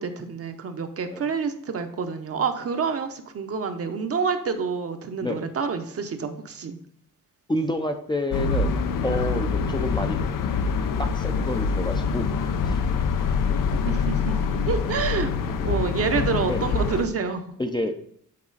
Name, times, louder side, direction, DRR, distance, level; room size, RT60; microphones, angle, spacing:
voice 1, 0.0-6.8 13.7-14.4 14.7-15.3 15.6-17.4, right 5 dB, 45° right, 7 dB, 0.8 m, -28 dB
voice 2, 7.5-8.8 9.0-10.2 11.0-12.8 15.5-15.7 16.5-16.7 17.6-17.9, left 1 dB, 15° left, 4 dB, 0.5 m, -29 dB
sound 1, 8.3-17.0, left 5 dB, 80° left, 0.6 m, -25 dB
8.6 x 4.1 x 3.9 m, 0.66 s
wide cardioid pair, 150°, 33 cm